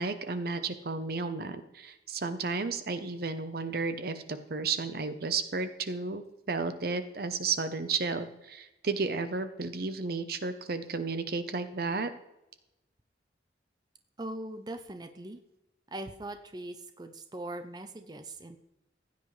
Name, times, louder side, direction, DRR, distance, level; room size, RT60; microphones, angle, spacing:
voice 1, 0.0-12.1, right 4 dB, 55° right, 10 dB, 0.8 m, -33 dB
voice 2, 14.2-15.4 15.9-18.6, right 1 dB, 20° right, 8 dB, 0.7 m, -41 dB
15.5 x 9.4 x 3.3 m, 0.93 s
head